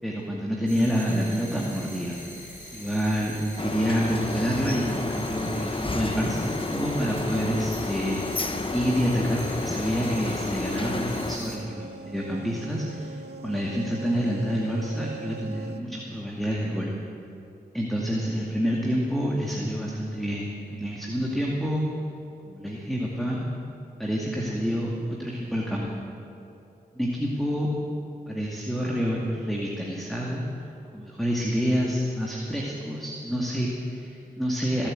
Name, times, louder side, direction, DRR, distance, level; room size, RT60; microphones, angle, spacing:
voice 1, 0.0-2.2 2.7-16.9 17.7-21.8 22.5-23.4 24.0-26.1 26.9-27.7 28.3-30.4 30.9-34.9, equal, ahead, -3 dB, 2.2 m, -28 dB
sound 1, 0.7-11.6, left 1 dB, 50° left, 4.4 m, -43 dB
sound 2, 3.6-11.4, left 2 dB, 30° left, 1.0 m, -31 dB
sound 3, 10.6-15.8, right 4 dB, 85° right, 0.6 m, -42 dB
17.5 x 8.6 x 7.7 m, 2.9 s
cardioid pair, 55°, 17 cm